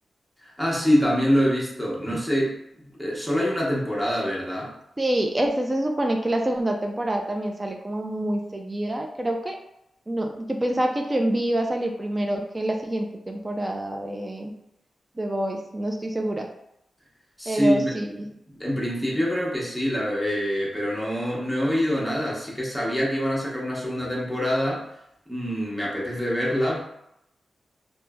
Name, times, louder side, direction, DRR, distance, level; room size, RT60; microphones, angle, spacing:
voice 1, 0.4-2.6 3.0-4.7 17.4-17.9 18.6-24.9 25.3-26.8, equal, 5° right, -4 dB, 0.8 m, -25 dB
voice 2, 5.0-9.6 10.1-14.5 15.2-16.5 17.5-18.3, right 1 dB, 25° right, 2 dB, 0.3 m, -26 dB
3.0 x 2.0 x 2.2 m, 0.79 s
cardioid pair, 65°, 0 cm